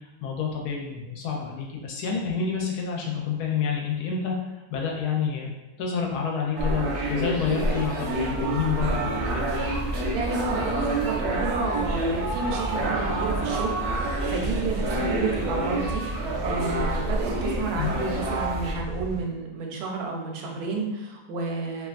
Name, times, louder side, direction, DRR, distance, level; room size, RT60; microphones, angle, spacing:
voice 1, 0.2-4.4 4.7-5.5 5.8-9.5 17.8-17.9, left 6 dB, 90° left, 0 dB, 1.1 m, -28 dB
sound 1, 6.6-18.7, right 1 dB, 65° right, 0.7 m, -28 dB
sound 2, 8.5-19.2, right 1 dB, 15° right, 0.5 m, -34 dB
voice 2, 10.1-21.9, right 4 dB, 80° right, 1 dB, 1.1 m, -31 dB
2.8 x 2.3 x 2.4 m, 1.1 s
omnidirectional pair, 1.6 m